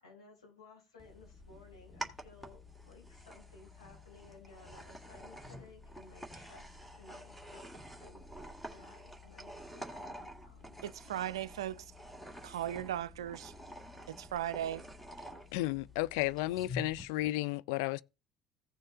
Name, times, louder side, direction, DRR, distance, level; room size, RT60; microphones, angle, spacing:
voice 1, 0.0-10.8, left 3 dB, 80° left, 4.8 m, -58 dB
sound 1, 1.0-17.0, equal, ahead, 1.9 m, -48 dB
voice 2, 10.8-11.9 12.4-13.5 14.1-14.8, right 11 dB, 75° right, 0.4 m, -37 dB
voice 3, 15.5-18.0, left 18 dB, 65° left, 0.4 m, -33 dB
16.0 x 6.5 x 2.7 m
figure-of-eight pair, 55°, 3 cm